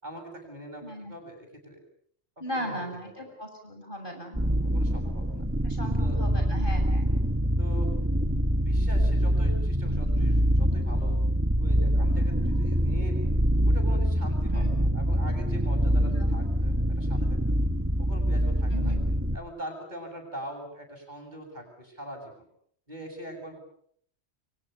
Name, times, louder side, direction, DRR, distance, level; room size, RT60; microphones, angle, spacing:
voice 1, 0.0-1.8 2.5-3.3 4.6-5.4 6.0-6.2 7.1-7.2 7.6-7.9 8.6-11.2 11.6-13.3 13.6-17.4 18.0-18.9 19.3-22.5 22.9-23.6, right 1 dB, 40° right, 3 dB, 8.1 m, -42 dB
voice 2, 0.8-1.1 2.4-4.4 5.6-7.1 14.5-14.8 16.0-16.4 18.7-19.0, equal, 50° left, 4 dB, 7.3 m, -37 dB
sound 1, 4.3-19.4, equal, 10° right, 1.5 m, -25 dB
29.5 x 24.5 x 6.9 m, 0.64 s
omnidirectional pair, 1.1 m